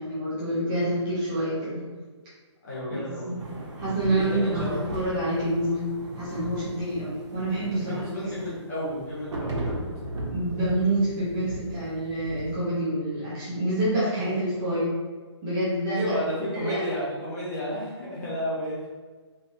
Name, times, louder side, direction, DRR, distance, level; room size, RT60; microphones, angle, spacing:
voice 1, 0.0-1.8 2.9-3.4 3.8-5.9 6.1-8.2 10.3-14.9 15.4-16.2 16.5-16.8, right 1 dB, 10° right, -11 dB, 0.7 m, -27 dB
voice 2, 2.6-3.3 4.1-4.7 7.7-9.8 14.1-14.3 15.9-18.9, equal, 35° left, -8 dB, 1.3 m, -32 dB
sound 1, 3.4-12.5, right 1 dB, 75° right, 1.1 m, -37 dB
3.2 x 3.1 x 2.7 m, 1.4 s
hypercardioid pair, 180°, 15 cm